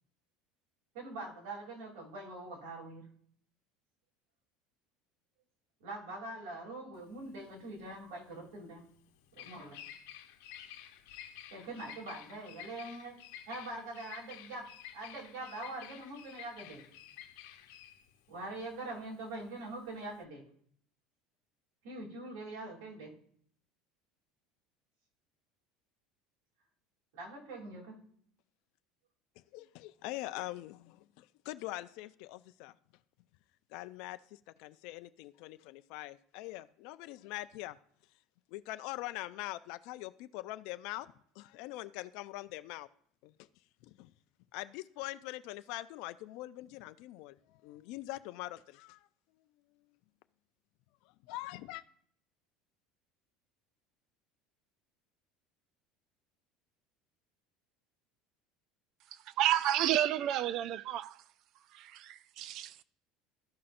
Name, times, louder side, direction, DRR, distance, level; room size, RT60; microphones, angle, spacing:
voice 1, 0.9-3.0 5.8-8.8 9.3-9.8 11.5-13.2 13.5-14.6 14.9-16.8 18.3-20.4 21.8-23.1 27.1-28.0, right 2 dB, 80° right, 3.0 m, -43 dB
Bird vocalization bird call bird song, 7.0-20.2, left 10 dB, 85° left, 0.8 m, -52 dB
voice 2, 29.5-32.7 33.7-37.8 38.5-41.1 41.4-42.9 43.2-43.3 43.9-44.1 44.5-49.0 51.3-51.8, left 17 dB, 70° left, 0.4 m, -43 dB
voice 3, 59.4-61.2 61.7-62.7, right 12 dB, 50° right, 0.4 m, -31 dB
13.5 x 5.6 x 2.5 m
cardioid pair, 140°, 0 cm